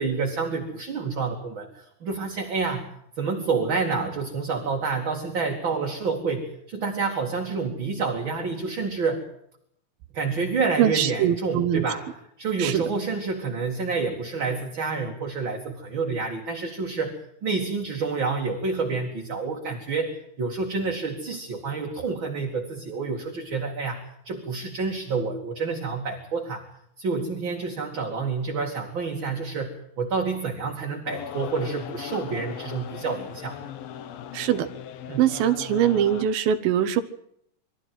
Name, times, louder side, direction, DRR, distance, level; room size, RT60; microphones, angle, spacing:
voice 1, 0.0-2.9 3.2-9.2 10.1-12.1 12.4-26.7 27.0-33.6 35.1-35.2, right 4 dB, 35° right, 1 dB, 2.9 m, -28 dB
voice 2, 10.8-11.8 12.6-12.8 34.3-34.7 35.2-37.0, right 10 dB, 90° right, 9 dB, 2.9 m, -22 dB
sound 1, 31.1-36.3, left 9 dB, 80° left, 3.1 m, -38 dB
24.0 x 14.0 x 9.2 m, 0.71 s
omnidirectional pair, 4.0 m